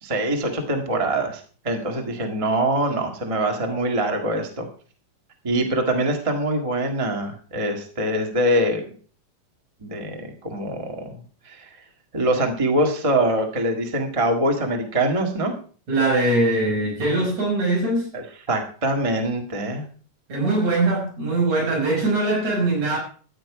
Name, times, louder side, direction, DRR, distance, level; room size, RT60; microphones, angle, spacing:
voice 1, 0.0-4.7 5.4-8.8 9.8-11.7 12.1-15.5 18.1-19.8, right 1 dB, 15° right, 1.1 m, -24 dB
voice 2, 15.9-18.1 20.3-23.0, right 2 dB, 55° right, 6.6 m, -21 dB
14.0 x 9.4 x 4.9 m
omnidirectional pair, 3.6 m